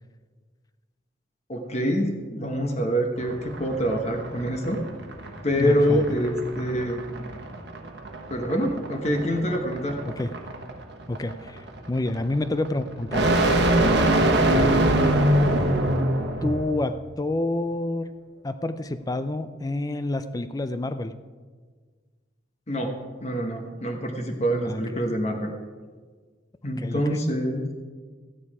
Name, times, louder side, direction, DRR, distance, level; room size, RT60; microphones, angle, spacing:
voice 1, 1.5-4.8 5.4-7.0 8.3-10.0 22.7-25.5 26.6-27.7, equal, 35° left, 2 dB, 1.2 m, -26 dB
sound 1, 3.2-16.7, right 1 dB, 60° right, 1.2 m, -24 dB
voice 2, 5.6-6.0 10.2-10.3 11.1-13.3 14.5-15.2 16.4-18.1 18.4-21.1 24.6-24.8 26.8-27.2, left 2 dB, 20° left, 11 dB, 0.4 m, -28 dB
13.5 x 9.7 x 4.8 m, 1.5 s
head